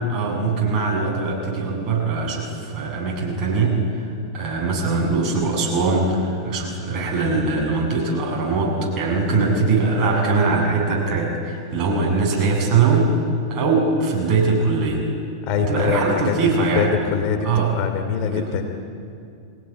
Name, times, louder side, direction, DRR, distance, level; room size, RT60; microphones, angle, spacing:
voice 1, 0.1-4.1 4.3-13.1 13.5-15.0 15.7-16.9 17.4-17.7 18.3-18.5, right 3 dB, 40° right, 0 dB, 7.2 m, -21 dB
voice 2, 15.4-18.6, left 6 dB, 45° left, 6 dB, 2.9 m, -24 dB
23.0 x 18.0 x 9.9 m, 2.4 s
hypercardioid pair, 110°, 2 cm